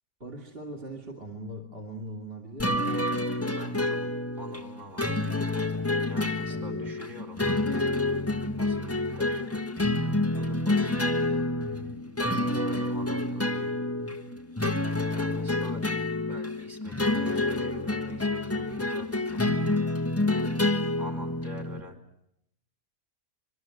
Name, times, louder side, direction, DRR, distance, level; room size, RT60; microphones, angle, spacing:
voice 1, 0.2-2.9 6.5-6.9, right 1 dB, 40° right, 4 dB, 3.0 m, -40 dB
sound 1, 2.6-21.8, left 2 dB, 10° left, 1.4 m, -28 dB
voice 2, 3.6-4.0 4.4-5.3 6.0-7.4 8.6-9.5 10.4-11.5 12.6-13.8 15.1-15.8 16.3-19.4 21.0-22.0, equal, 55° right, 0 dB, 4.4 m, -46 dB
25.5 x 23.5 x 7.9 m, 0.79 s
omnidirectional pair, 1.5 m